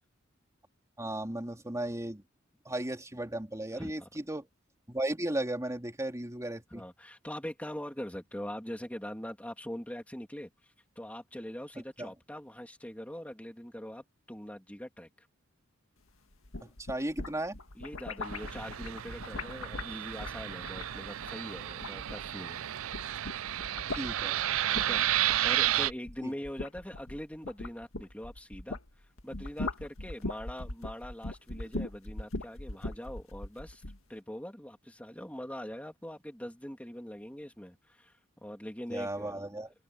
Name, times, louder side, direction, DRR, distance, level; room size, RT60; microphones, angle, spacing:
voice 1, 1.0-2.2 2.6-4.5 4.9-6.8 12.0-12.1 16.6-17.5 24.0-24.4 26.2-26.3 38.9-39.7, right 1 dB, 15° right, 3.2 m, -35 dB
voice 2, 3.7-4.1 6.7-15.3 17.7-22.6 24.7-25.0 25.4-28.8 29.2-33.8 34.1-39.6, equal, 5° left, 3.0 m, -42 dB
sound 1, 16.3-22.5 22.8-28.9 29.2-34.0, left 2 dB, 85° left, 2.0 m, -40 dB
Fixed-wing aircraft airplane, 18.2-25.9, right 12 dB, 80° right, 0.5 m, -32 dB
head